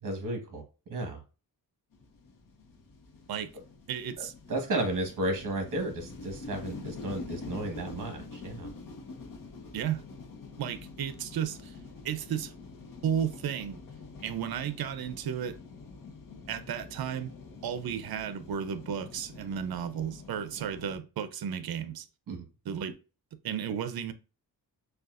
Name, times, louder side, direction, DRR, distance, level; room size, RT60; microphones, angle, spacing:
voice 1, 0.0-0.6 0.9-1.2 4.2-8.7 22.3-22.4, right 1 dB, 50° right, 1.4 m, -33 dB
sound 1, 1.9-21.0, left 4 dB, 55° left, 0.9 m, -46 dB
voice 2, 3.9-4.3 9.7-10.0 10.6-11.7 12.0-12.5 13.0-13.8 14.2-15.6 16.5-17.3 17.6-22.1 22.7-22.9 23.4-24.1, right 8 dB, 70° right, 0.6 m, -33 dB
6.6 x 2.3 x 2.5 m
wide cardioid pair, 155°, 39 cm